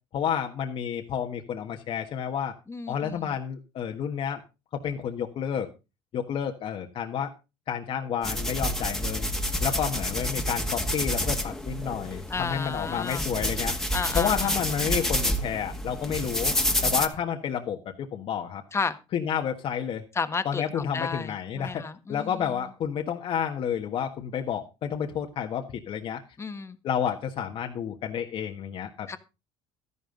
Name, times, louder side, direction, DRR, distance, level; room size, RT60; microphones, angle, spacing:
voice 1, 0.1-2.5 2.9-4.4 4.7-5.7 6.1-7.3 7.7-9.3 9.6-13.7 14.1-16.5 16.8-18.6 19.1-20.1 20.4-26.2 26.8-29.2, left 8 dB, 55° left, 2 dB, 1.5 m, -30 dB
voice 2, 2.7-3.3 12.3-13.2 13.9-14.6 16.8-17.0 18.7-19.0 20.1-22.5 26.4-26.8 29.1-29.2, left 4 dB, 25° left, 10 dB, 1.5 m, -33 dB
sound 1, 8.2-17.1, equal, 5° left, 1.9 m, -29 dB
12.5 x 11.0 x 3.9 m, 0.29 s
supercardioid pair, 90°, 11 cm